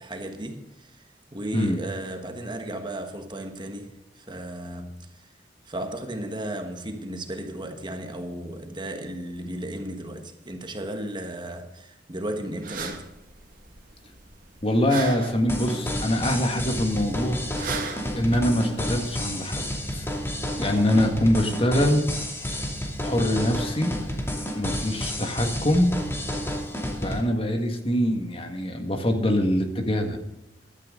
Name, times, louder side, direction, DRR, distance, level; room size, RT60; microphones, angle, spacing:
voice 1, 0.0-5.3 5.6-13.1 20.7-21.0, right 1 dB, 25° right, 1.4 m, -35 dB
sound 1, 12.6-19.4, right 4 dB, 50° right, 1.8 m, -39 dB
voice 2, 14.6-17.5 18.1-19.7 19.9-20.1 20.6-22.1 23.0-24.0 24.5-26.0 27.0-30.2, left 1 dB, 30° left, 1.7 m, -24 dB
sound 2, 15.5-27.2, equal, 15° left, 2.4 m, -31 dB
15.5 x 12.0 x 3.8 m
head